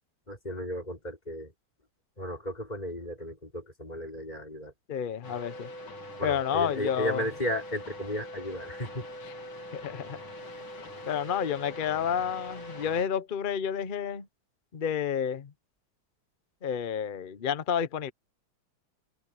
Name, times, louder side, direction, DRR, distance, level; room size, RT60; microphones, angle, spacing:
voice 1, 0.3-1.5 2.2-4.7 6.2-9.1, equal, 20° left, 5.4 m, -34 dB
voice 2, 4.9-5.7 6.2-7.2 9.7-10.2 11.0-14.3 14.7-15.5 16.6-18.1, left 8 dB, 55° left, 0.5 m, -30 dB
sound 1, 5.2-13.1, left 1 dB, 75° left, 4.2 m, -43 dB
omnidirectional pair, 2.2 m